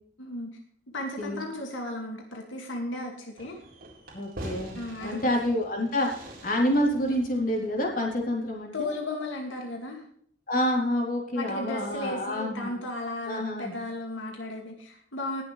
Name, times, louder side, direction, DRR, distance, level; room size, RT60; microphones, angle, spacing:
voice 1, 0.2-0.5 0.9-3.6 4.8-5.3 8.7-10.0 11.3-15.4, left 1 dB, 85° left, 1 dB, 2.3 m, -35 dB
Fireworks, 3.4-8.6, right 1 dB, 50° right, 4.3 m, -45 dB
voice 2, 4.1-8.9 10.5-12.7 13.3-13.7, left 1 dB, 45° left, -1 dB, 3.7 m, -28 dB
19.5 x 7.7 x 3.3 m, 0.62 s
head